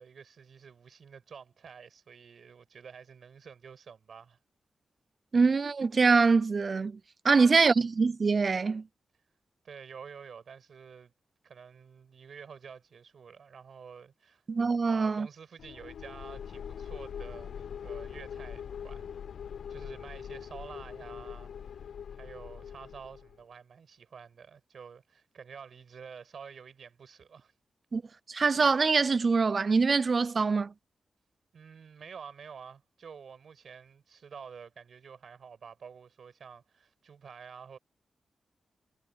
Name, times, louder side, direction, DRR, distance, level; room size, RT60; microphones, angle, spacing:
voice 1, 0.0-4.4 7.3-7.6 9.6-11.1 11.4-14.4 14.8-19.1 19.7-21.7 22.1-27.5 31.5-37.8, right 6 dB, 60° right, 6.2 m, -49 dB
voice 2, 5.3-7.0 7.2-8.9 14.5-15.3 27.9-28.0 28.3-30.7, right 4 dB, 35° right, 0.4 m, -24 dB
sound 1, 15.6-23.4, left 8 dB, 75° left, 0.6 m, -42 dB
wide cardioid pair, 160°, 0 cm